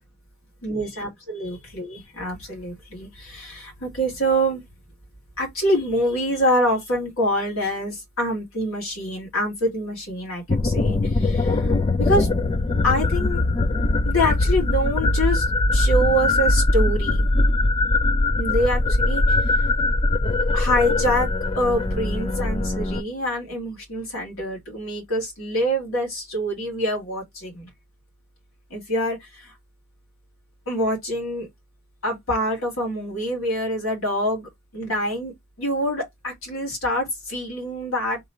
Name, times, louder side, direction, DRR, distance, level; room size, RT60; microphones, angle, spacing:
voice 1, 0.6-4.6 5.4-12.3 12.8-13.4 14.0-15.5 15.7-17.2 18.4-19.6 20.5-21.3 21.6-27.7 28.7-29.5 30.7-31.5 32.0-35.3 35.6-38.2, equal, 90° left, 2.5 m, -25 dB
sound 1, 10.5-23.0, left 2 dB, 25° left, 0.3 m, -21 dB
3.7 x 3.1 x 4.3 m
head